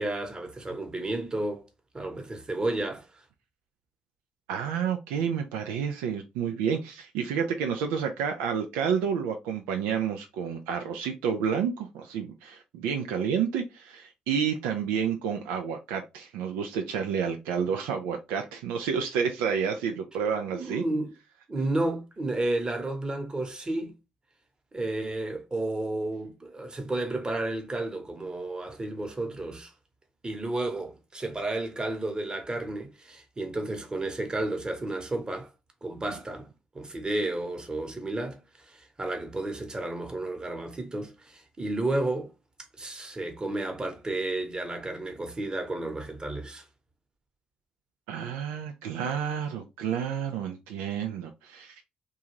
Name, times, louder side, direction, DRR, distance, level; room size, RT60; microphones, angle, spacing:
voice 1, 0.0-1.6 1.9-3.2 20.5-21.1 21.5-23.9 24.7-29.7 30.2-35.5 35.8-36.5 36.7-42.3 42.8-46.6, right 2 dB, 25° right, 1.0 m, -32 dB
voice 2, 4.5-20.8 48.1-51.8, right 7 dB, 75° right, 0.3 m, -30 dB
2.5 x 2.3 x 3.0 m
hypercardioid pair, 45°, 3 cm